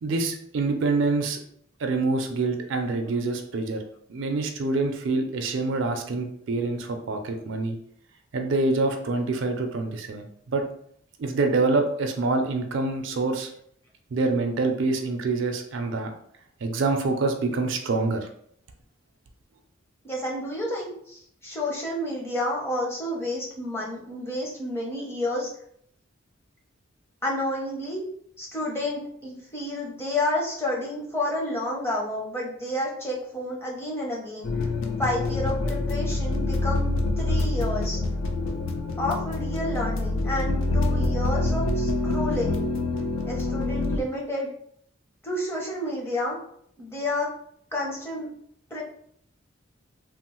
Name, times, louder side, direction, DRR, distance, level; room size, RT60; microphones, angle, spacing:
voice 1, 0.0-1.4 1.8-3.8 4.1-7.8 8.3-10.6 11.2-13.5 14.1-16.1 16.6-18.3, right 3 dB, 70° right, 5 dB, 0.4 m, -26 dB
voice 2, 20.0-25.5 27.2-28.0 28.4-34.5 35.0-38.0 39.0-42.7 43.3-44.5 45.2-46.4 46.8-47.3 47.7-48.3 48.7-48.8, left 1 dB, 15° left, -3 dB, 0.6 m, -30 dB
sound 1, 34.4-44.0, left 2 dB, 80° left, 0.4 m, -26 dB
3.0 x 2.0 x 2.9 m, 0.66 s
head